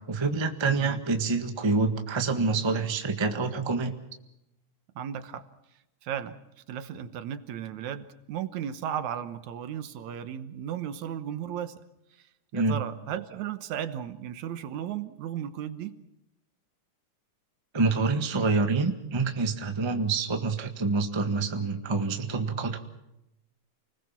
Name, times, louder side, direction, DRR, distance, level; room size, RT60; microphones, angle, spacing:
voice 1, 0.1-3.9 12.5-12.8 17.7-22.8, right 3 dB, 20° right, 5 dB, 0.8 m, -27 dB
voice 2, 0.6-1.0 5.0-5.5 6.0-6.4 6.7-11.8 12.5-16.0, right 9 dB, 75° right, 11 dB, 2.4 m, -35 dB
29.5 x 20.5 x 5.9 m, 0.88 s
omnidirectional pair, 3.4 m